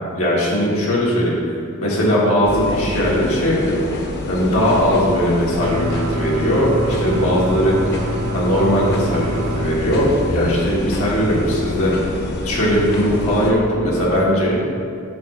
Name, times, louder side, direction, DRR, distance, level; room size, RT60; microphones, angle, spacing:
voice 1, 0.1-3.8 4.3-12.1 12.4-14.7, equal, 80° left, -5 dB, 2.1 m, -19 dB
sound 1, 2.5-13.5, left 1 dB, 50° left, 1.0 m, -27 dB
sound 2, 5.6-9.7, right 2 dB, 80° right, 0.6 m, -26 dB
9.6 x 3.3 x 6.4 m, 2.4 s
head